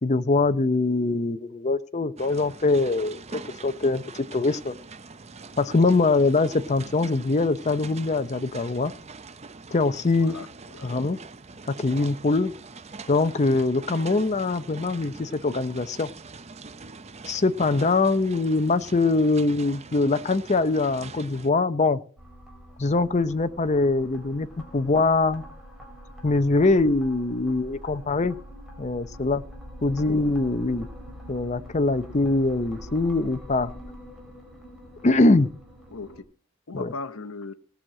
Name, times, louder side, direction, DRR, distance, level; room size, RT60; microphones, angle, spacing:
voice 1, 0.0-4.0 4.3-4.7 5.6-8.9 9.7-10.3 10.8-11.2 11.7-12.5 13.1-16.1 17.3-22.0 22.8-24.5 24.7-25.4 26.2-28.4 28.8-29.4 29.8-30.9 31.3-33.7 35.0-35.5 36.7-36.9, left 3 dB, 30° left, 0.6 m, -23 dB
sound 1, 2.2-21.5, right 4 dB, 30° right, 0.6 m, -43 dB
voice 2, 10.1-11.2 29.9-30.1 35.9-36.2 36.7-37.5, left 3 dB, 70° left, 0.9 m, -39 dB
sound 2, 22.2-36.2, equal, ahead, 3.3 m, -44 dB
17.5 x 6.3 x 7.4 m
head